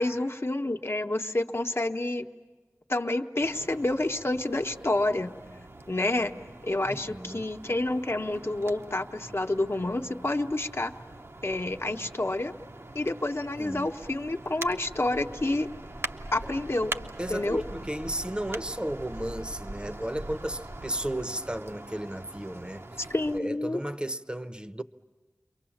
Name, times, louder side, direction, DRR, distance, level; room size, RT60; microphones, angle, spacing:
voice 1, 0.0-2.2 2.9-5.3 5.9-6.3 6.6-10.9 11.4-12.5 12.9-15.7 16.3-16.9 17.3-17.6 23.1-23.8, left 2 dB, 45° left, 1.1 m, -28 dB
sound 1, 3.4-23.4, right 2 dB, 45° right, 0.8 m, -43 dB
voice 2, 6.9-7.5 13.6-13.9 16.4-16.5 17.2-24.8, right 1 dB, 15° right, 0.8 m, -34 dB
29.5 x 23.0 x 7.2 m
wide cardioid pair, 45°, 6 cm